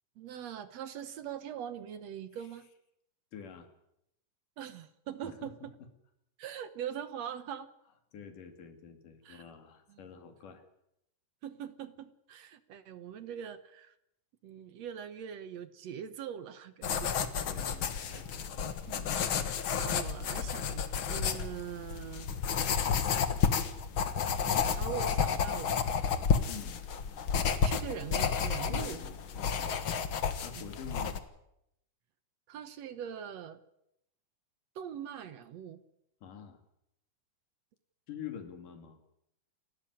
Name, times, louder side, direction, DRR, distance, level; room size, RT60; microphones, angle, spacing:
voice 1, 0.2-2.7 4.6-5.8 6.4-7.7 9.2-9.5 9.9-10.1 11.4-13.9 14.4-17.2 18.1-18.2 18.9-19.1 19.8-22.3 24.7-25.8 27.6-29.0 30.6-30.7 32.5-33.6 34.8-35.8, right 9 dB, 65° right, 12 dB, 2.1 m, -42 dB
voice 2, 3.3-3.7 5.2-5.5 8.1-10.6 17.5-18.1 18.9-19.1 26.5-26.8 28.7-29.7 30.4-31.1 36.2-36.6 38.1-39.0, left 8 dB, 85° left, 7 dB, 4.1 m, -47 dB
sound 1, 16.8-31.2, left 6 dB, 50° left, 1.8 m, -31 dB
28.5 x 13.5 x 9.9 m, 0.80 s
omnidirectional pair, 3.6 m